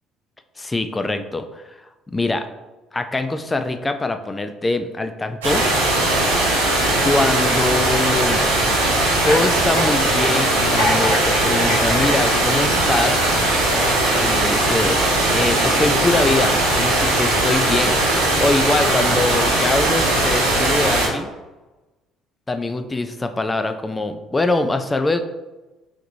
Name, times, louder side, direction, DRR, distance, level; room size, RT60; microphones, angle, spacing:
voice 1, 0.6-1.6 2.1-2.4 2.9-5.7 7.0-8.5 9.2-13.2 14.1-15.0 15.3-18.0 18.4-21.3 22.5-25.2, left 2 dB, 20° left, 8 dB, 0.4 m, -23 dB
sound 1, 5.4-21.1, right 1 dB, 80° right, 1.4 m, -19 dB
sound 2, 8.5-13.3 13.9-14.1, left 1 dB, 80° left, 1.3 m, -27 dB
5.8 x 3.0 x 2.6 m, 1.1 s
figure-of-eight pair, 55°, 0 cm